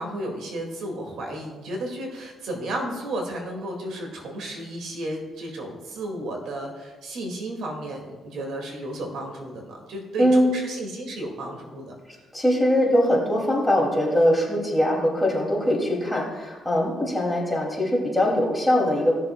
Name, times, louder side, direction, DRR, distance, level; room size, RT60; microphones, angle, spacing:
voice 1, 0.0-11.9, right 1 dB, 75° right, 1 dB, 2.1 m, -33 dB
voice 2, 10.2-10.5 12.3-19.2, equal, 5° left, -2 dB, 2.6 m, -22 dB
17.0 x 6.9 x 2.3 m, 1.3 s
cardioid pair, 90°, 0 cm